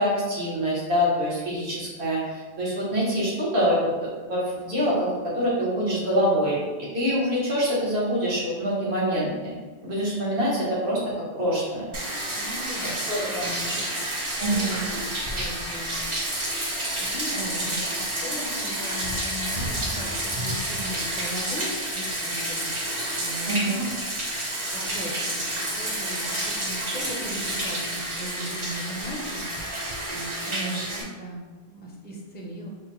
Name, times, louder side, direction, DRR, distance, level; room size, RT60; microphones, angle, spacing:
voice 1, 0.0-3.9 4.3-5.1 5.4-6.6 6.9-9.6 9.8-11.0 11.4-11.8 13.1-13.8 14.4-14.9 17.3-17.6 23.5-23.8 30.5-30.8, equal, 80° right, -6 dB, 1.4 m, -25 dB
Bathtub (filling or washing), 11.9-31.0, right 1 dB, 35° right, 0.6 m, -30 dB
voice 2, 12.3-13.7 14.5-16.0 17.0-22.7 23.2-24.0 24.7-25.4 25.7-29.4 30.1-31.4 31.7-32.7, equal, 15° left, -2 dB, 0.4 m, -38 dB
5.4 x 2.2 x 3.0 m, 1.3 s
omnidirectional pair, 1.0 m